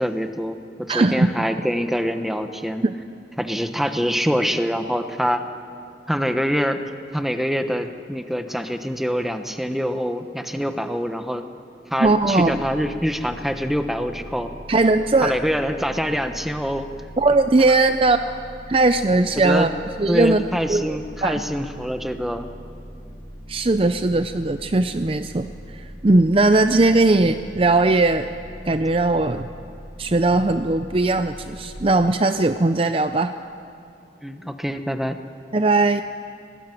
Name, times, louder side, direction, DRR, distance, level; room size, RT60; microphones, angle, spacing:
voice 1, 0.0-2.8 3.4-5.4 6.1-6.8 7.1-11.4 11.9-14.5 15.2-16.9 19.4-19.7 20.1-22.5 34.2-35.2, equal, ahead, 7 dB, 1.1 m, -25 dB
voice 2, 0.9-1.3 2.8-2.9 12.0-12.6 14.7-15.3 17.2-18.4 18.7-19.7 20.0-20.4 20.7-21.4 23.5-28.3 28.7-29.5 30.0-33.3 35.5-36.0, right 2 dB, 30° right, 9 dB, 0.5 m, -19 dB
sound 1, 12.0-31.8, equal, 50° left, 3.1 m, -41 dB
24.5 x 19.0 x 9.2 m, 2.6 s
head